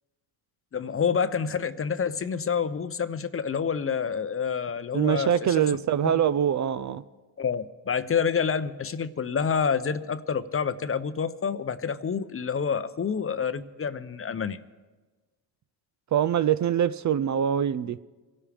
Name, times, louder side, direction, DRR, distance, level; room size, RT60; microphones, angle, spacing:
voice 1, 0.7-5.5 7.4-14.6, left 6 dB, 30° left, 0.7 m, -28 dB
voice 2, 4.9-7.0 16.1-18.0, right 9 dB, 40° right, 0.5 m, -24 dB
24.5 x 12.0 x 3.5 m
cardioid pair, 80°, 45 cm